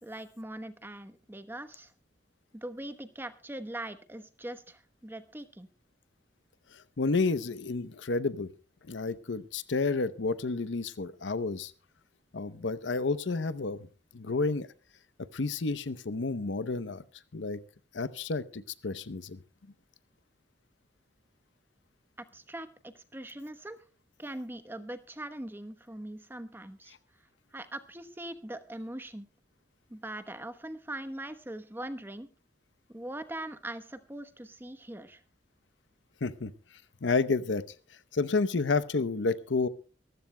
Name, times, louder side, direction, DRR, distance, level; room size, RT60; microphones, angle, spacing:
voice 1, 0.0-1.9 2.5-5.7 22.2-23.8 24.2-26.9 27.5-29.3 29.9-32.3 32.9-35.2, right 1 dB, 10° right, 10 dB, 1.0 m, -41 dB
voice 2, 6.7-8.5 8.9-11.7 12.3-13.8 14.1-14.7 15.3-17.0 17.3-17.6 17.9-19.4 36.2-36.5 37.0-37.6 38.1-39.7, left 3 dB, 75° left, 15 dB, 0.7 m, -30 dB
24.0 x 14.5 x 2.2 m, 0.35 s
head